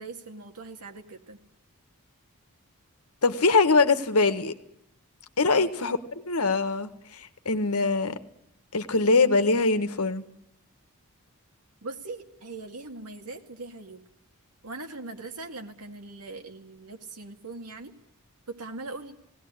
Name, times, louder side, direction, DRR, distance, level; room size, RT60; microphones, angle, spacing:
voice 1, 0.0-1.4 5.5-5.7 11.8-14.0 14.6-17.9 18.5-19.2, right 3 dB, 90° right, 2.3 m, -40 dB
voice 2, 3.2-4.5 5.4-6.0 6.3-8.2 8.7-10.2, left 3 dB, 75° left, 1.5 m, -23 dB
19.5 x 17.5 x 9.7 m
head